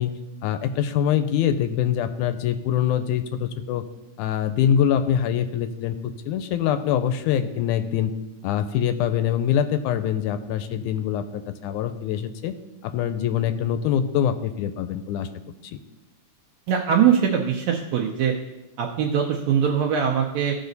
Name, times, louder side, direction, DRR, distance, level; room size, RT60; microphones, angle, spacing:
voice 1, 0.0-3.8 4.2-6.0 6.3-8.1 8.4-12.5 12.8-15.3 15.7-15.8, left 9 dB, 90° left, 10 dB, 2.1 m, -24 dB
voice 2, 16.7-18.3 18.8-20.5, right 8 dB, 75° right, 0 dB, 1.9 m, -22 dB
15.0 x 5.0 x 4.0 m, 1.0 s
omnidirectional pair, 3.5 m